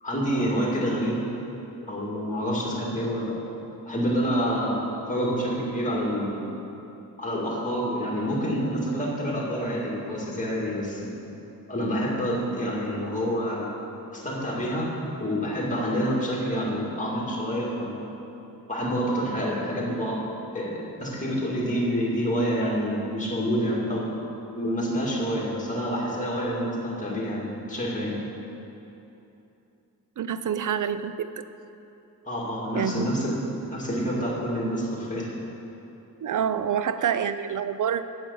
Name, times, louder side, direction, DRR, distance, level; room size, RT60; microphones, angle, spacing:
voice 1, 0.0-1.3 1.8-3.4 3.9-6.5 7.2-11.1 11.7-13.7 14.1-18.1 18.7-20.2 20.5-24.2 24.5-28.2 32.2-33.4 33.7-35.3, equal, 20° left, -4 dB, 2.2 m, -27 dB
voice 2, 30.2-31.5 32.7-33.1 36.2-38.0, right 8 dB, 55° right, 12 dB, 0.5 m, -27 dB
9.3 x 7.8 x 7.1 m, 2.9 s
wide cardioid pair, 140°, 37 cm